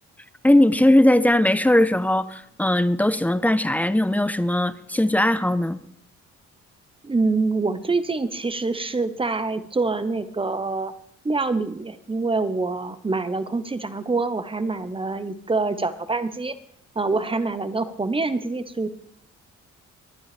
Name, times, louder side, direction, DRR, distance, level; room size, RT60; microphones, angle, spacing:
voice 1, 0.4-5.8, left 1 dB, 5° left, 13 dB, 0.7 m, -19 dB
voice 2, 7.0-10.9 11.2-16.6 16.9-18.9, right 3 dB, 20° right, 12 dB, 1.0 m, -25 dB
22.0 x 9.3 x 3.4 m, 0.68 s
cardioid pair, 90°, 30 cm